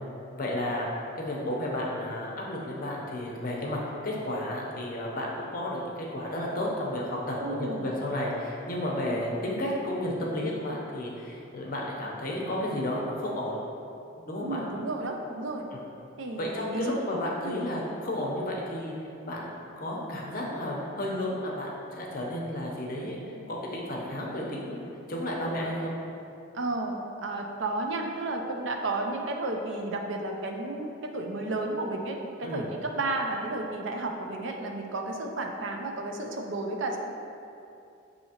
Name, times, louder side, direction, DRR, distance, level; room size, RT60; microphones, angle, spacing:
voice 1, 0.3-0.9 1.2-13.6 14.2-14.6 15.7-15.8 16.4-18.9 19.2-25.9 32.4-32.6, left 1 dB, 45° left, -3 dB, 0.6 m, -32 dB
voice 2, 7.4-7.9 9.0-9.2 14.4-15.7 16.2-17.0 17.4-17.6 26.5-37.0, right 2 dB, 65° right, 2 dB, 0.5 m, -32 dB
6.6 x 2.8 x 2.8 m, 2.7 s
head